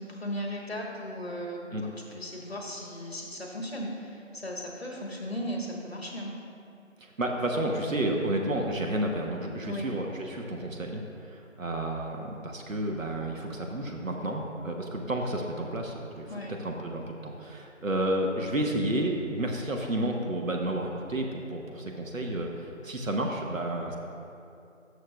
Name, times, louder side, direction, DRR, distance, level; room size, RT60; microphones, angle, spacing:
voice 1, 0.0-6.3 9.6-9.9 16.3-16.5, equal, 50° left, -1 dB, 1.3 m, -36 dB
voice 2, 7.0-24.0, right 1 dB, 85° right, 1 dB, 1.1 m, -31 dB
13.0 x 6.5 x 2.4 m, 2.6 s
figure-of-eight pair, 170°, 39 cm